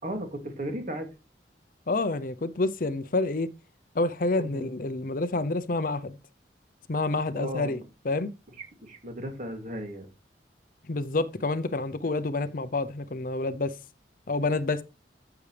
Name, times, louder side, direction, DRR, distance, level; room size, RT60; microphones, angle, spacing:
voice 1, 0.0-1.1 4.3-4.7 7.3-7.8 8.8-10.1, equal, 45° right, 2.7 m, -35 dB
voice 2, 1.9-3.5 3.9-6.1 6.9-8.3 10.9-13.7 14.3-14.8, left 2 dB, 50° left, 0.7 m, -28 dB
13.5 x 7.1 x 3.4 m
head